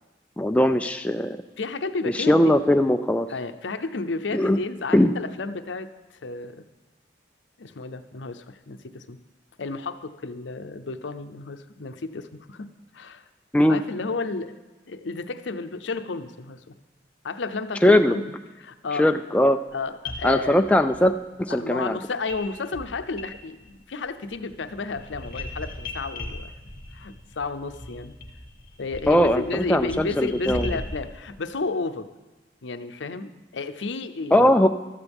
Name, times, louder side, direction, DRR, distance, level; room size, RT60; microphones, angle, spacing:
voice 1, 0.4-1.4 2.0-3.3 4.3-4.6 4.9-5.1 13.5-13.8 17.8-18.2 18.9-19.6 20.2-22.0 29.1-30.8 34.3-34.7, left 1 dB, 5° left, 7 dB, 0.3 m, -20 dB
voice 2, 1.6-2.5 3.3-5.9 6.2-6.6 7.6-9.2 9.6-13.2 13.7-14.6 14.9-16.7 17.2-18.3 18.6-19.1 19.7-20.6 21.6-26.5 26.9-28.1 28.8-32.1 32.6-34.5, left 3 dB, 80° left, 10 dB, 0.6 m, -32 dB
sound 1, 19.7-19.8 20.0-21.0 22.3-22.5 22.7-23.8 24.1-31.1, left 1 dB, 50° left, 1.8 m, -38 dB
15.0 x 13.0 x 3.5 m, 1.1 s
head